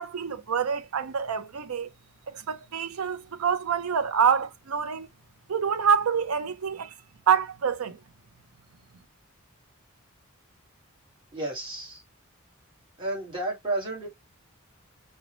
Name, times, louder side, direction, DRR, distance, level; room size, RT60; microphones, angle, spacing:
voice 1, 0.0-1.9 2.3-5.1 5.5-6.9 7.3-8.0, right 7 dB, 90° right, 0.5 m, -26 dB
voice 2, 11.3-12.0 13.0-14.1, right 2 dB, 25° right, 1.6 m, -31 dB
5.1 x 2.2 x 3.0 m
head